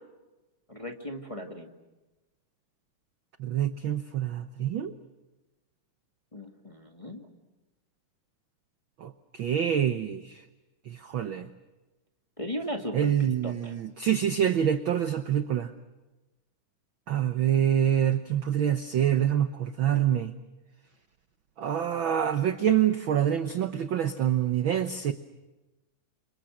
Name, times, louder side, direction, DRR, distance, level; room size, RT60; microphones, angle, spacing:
voice 1, 0.7-1.7 6.3-7.3 12.4-13.1 13.4-13.7, equal, 15° left, 3 dB, 1.5 m, -37 dB
voice 2, 3.4-4.9 9.0-10.4 10.9-11.5 12.9-15.7 17.1-20.3 21.6-25.1, right 9 dB, 75° right, 9 dB, 1.1 m, -26 dB
29.0 x 27.0 x 6.4 m, 1.1 s
omnidirectional pair, 3.6 m